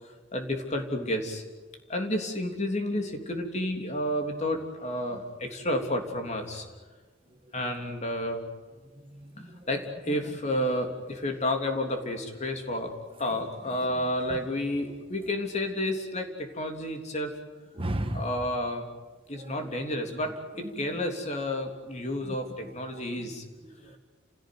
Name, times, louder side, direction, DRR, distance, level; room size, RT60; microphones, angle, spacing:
voice 1, 0.3-1.4 1.9-6.7 7.5-8.4 9.4-12.9 13.2-17.3 18.1-18.8 19.3-23.4, left 1 dB, 35° left, 3.4 m, -31 dB
voice 2, 9.0-9.7 10.1-10.4 13.2-13.5 14.3-14.4 15.2-15.3 17.7-18.3 19.3-19.7 20.3-21.0 22.2-22.3 22.6-23.0 23.6-24.0, right 1 dB, 30° right, 1.4 m, -38 dB
30.0 x 17.0 x 9.5 m
head